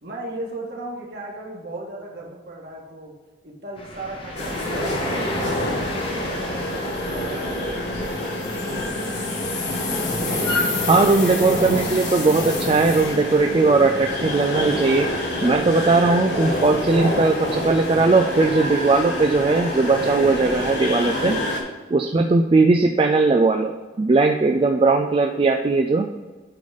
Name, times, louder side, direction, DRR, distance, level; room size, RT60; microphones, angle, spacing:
voice 1, 0.0-3.1 3.4-7.6, right 1 dB, 55° right, -3 dB, 1.9 m, -36 dB
sound 1, 3.8-16.8, left 2 dB, 30° left, 1.1 m, -38 dB
sound 2, 4.4-21.6, left 1 dB, 60° left, 1.6 m, -26 dB
voice 2, 10.9-15.1 15.4-21.4 21.9-26.1, right 3 dB, 30° right, 4 dB, 0.3 m, -19 dB
8.4 x 4.0 x 5.2 m, 1.3 s
head